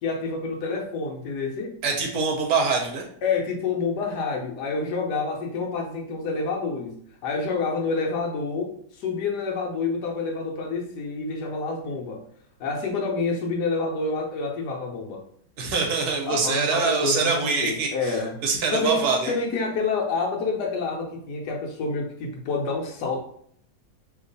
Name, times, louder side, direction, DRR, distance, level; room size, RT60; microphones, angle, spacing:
voice 1, 0.0-1.8 3.2-12.2 12.6-15.2 16.3-18.4 18.7-23.2, left 4 dB, 70° left, 1 dB, 1.1 m, -28 dB
voice 2, 1.8-3.0 15.6-19.3, right 4 dB, 70° right, 2 dB, 1.0 m, -24 dB
2.9 x 2.3 x 3.8 m, 0.64 s
omnidirectional pair, 1.9 m